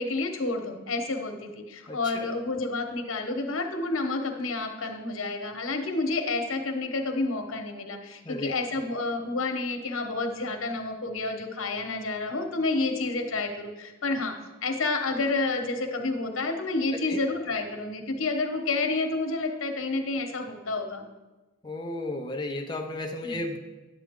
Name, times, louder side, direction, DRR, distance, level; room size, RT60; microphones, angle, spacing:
voice 1, 0.0-21.1 23.2-23.4, left 3 dB, 80° left, 5 dB, 1.1 m, -29 dB
voice 2, 1.9-2.3 8.2-8.5 16.9-17.2 21.6-23.6, left 2 dB, 20° left, 2 dB, 0.6 m, -34 dB
10.0 x 8.3 x 3.7 m, 1.1 s
head